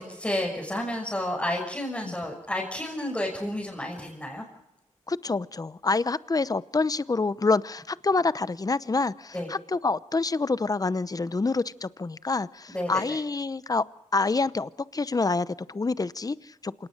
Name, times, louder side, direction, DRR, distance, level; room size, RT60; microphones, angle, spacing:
voice 1, 0.0-4.4 9.3-9.5 12.7-13.2, left 1 dB, 10° left, -2 dB, 6.2 m, -31 dB
voice 2, 5.1-13.8 14.1-16.9, left 3 dB, 30° left, 16 dB, 0.8 m, -27 dB
27.5 x 18.5 x 6.5 m, 0.86 s
wide cardioid pair, 75°, 13 cm